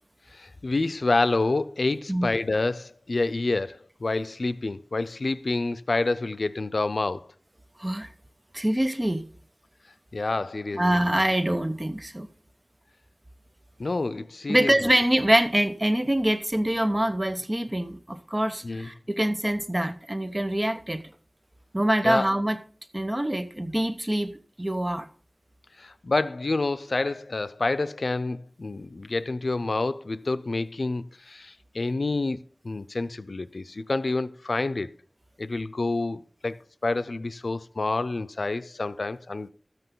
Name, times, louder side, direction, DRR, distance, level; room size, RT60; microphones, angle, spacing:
voice 1, 0.3-7.3 10.1-11.0 13.8-14.9 18.6-18.9 22.0-22.3 25.8-32.4 32.6-34.9 35.4-39.5, left 3 dB, 85° left, 0.5 m, -28 dB
voice 2, 8.5-9.2 10.7-12.3 14.5-21.0 21.7-22.6 22.9-24.3 24.6-25.1, right 1 dB, 25° right, 1.0 m, -25 dB
13.0 x 8.1 x 3.8 m
wide cardioid pair, 50°, 0 cm